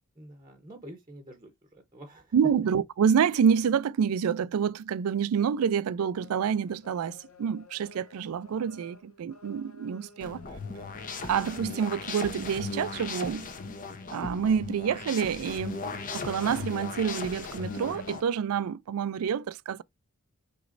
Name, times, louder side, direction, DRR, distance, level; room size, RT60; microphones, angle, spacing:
voice 1, 0.2-2.3, right 1 dB, 20° right, 0.8 m, -48 dB
voice 2, 2.3-10.4 11.2-13.5 14.1-15.8 16.1-19.8, right 7 dB, 75° right, 0.3 m, -27 dB
sound 1, 6.2-14.4 14.9-15.2 15.6-18.4, left 4 dB, 65° left, 1.1 m, -51 dB
sound 2, 10.2-18.2, left 4 dB, 35° left, 0.7 m, -37 dB
6.0 x 3.1 x 2.5 m
head